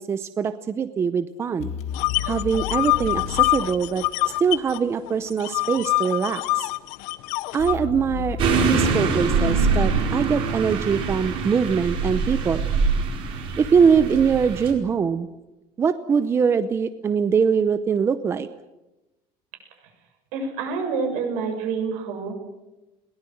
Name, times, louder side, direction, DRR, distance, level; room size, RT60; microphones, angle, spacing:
voice 1, 0.0-1.7 2.2-4.0 4.4-6.7 7.5-8.4 8.7-12.6 13.6-15.3 15.8-18.5, right 6 dB, 20° right, 12 dB, 0.7 m, -22 dB
sound 1, 1.6-4.6 7.6-11.0, left 9 dB, 60° left, 1.4 m, -33 dB
sound 2, 1.9-4.8 5.1-7.7, left 19 dB, 75° left, 0.8 m, -25 dB
sound 3, 8.4-14.7, right 5 dB, 45° right, 4.9 m, -24 dB
voice 2, 20.3-22.3, right 5 dB, 75° right, 4 dB, 7.1 m, -27 dB
22.0 x 19.0 x 7.8 m, 1.0 s
cardioid pair, 175°, 13 cm